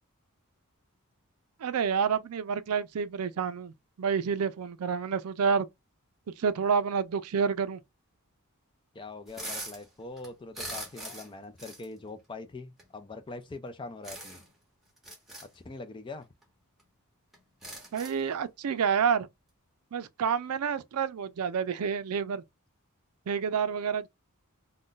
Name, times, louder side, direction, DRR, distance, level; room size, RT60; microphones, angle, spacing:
voice 1, 1.6-5.7 6.4-7.8 17.9-19.3 19.9-22.4 23.3-24.1, right 6 dB, 75° right, 0.4 m, -29 dB
voice 2, 8.9-14.4 15.5-16.3, left 3 dB, 20° left, 0.4 m, -43 dB
sound 1, 9.3-9.8 10.2-11.3 11.6-11.9 12.8-12.9 14.0-14.5 15.0-15.5 16.4-16.5 16.8-16.9 17.3-18.3, right 1 dB, ahead, 0.8 m, -41 dB
2.5 x 2.2 x 3.7 m
head